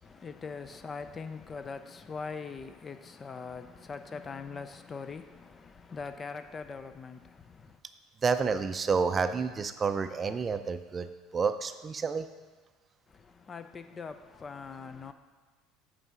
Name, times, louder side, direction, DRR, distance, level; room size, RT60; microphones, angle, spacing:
voice 1, 0.0-7.8 13.1-15.1, left 5 dB, 30° left, 0.5 m, -42 dB
voice 2, 8.2-11.1 11.3-12.3, right 5 dB, 30° right, 0.5 m, -29 dB
8.8 x 3.4 x 6.2 m
hypercardioid pair, 75°, 0 cm